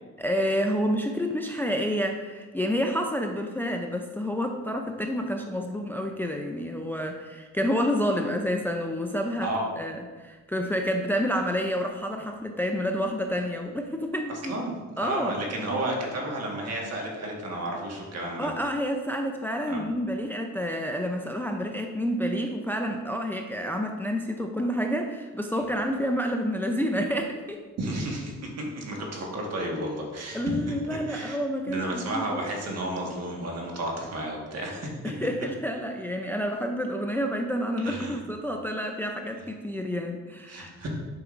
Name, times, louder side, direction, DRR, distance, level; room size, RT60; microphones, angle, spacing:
voice 1, 0.2-14.6 15.0-15.3 18.4-27.6 30.3-32.4 35.0-40.7, equal, 5° left, 3 dB, 0.4 m, -29 dB
voice 2, 14.5-18.5 19.7-19.8 27.8-30.4 30.9-31.4 31.7-34.9 37.8-38.2 40.5-40.9, right 1 dB, 55° right, 0 dB, 1.5 m, -32 dB
7.6 x 5.1 x 2.5 m, 1.3 s
cardioid pair, 90°, 30 cm